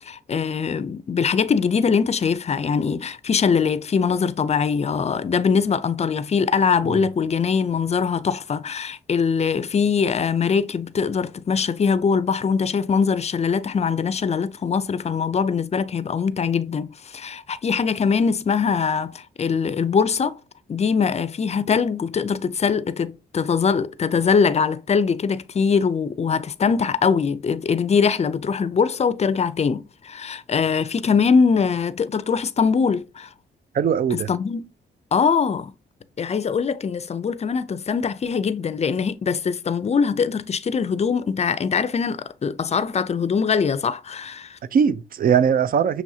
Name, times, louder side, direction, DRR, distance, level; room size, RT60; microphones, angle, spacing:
voice 1, 0.0-20.4 20.7-33.3 34.3-34.7 35.1-35.7 36.2-44.6, left 6 dB, 35° left, 0.5 m, -22 dB
voice 2, 33.7-34.3 44.7-46.0, right 7 dB, 50° right, 0.4 m, -20 dB
6.2 x 3.1 x 2.7 m
cardioid pair, 75°, 19 cm